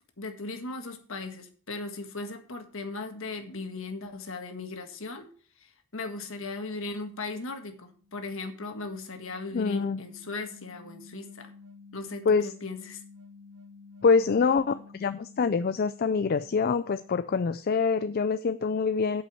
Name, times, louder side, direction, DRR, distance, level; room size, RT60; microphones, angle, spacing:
voice 1, 0.2-5.3 5.6-11.5 11.9-13.0, left 3 dB, 60° left, 1.6 m, -38 dB
sound 1, 7.8-17.9, left 4 dB, 80° right, 1.3 m, -52 dB
voice 2, 9.5-10.0 12.3-12.5 14.0-19.2, left 5 dB, 45° left, 0.4 m, -25 dB
8.4 x 5.6 x 7.1 m
head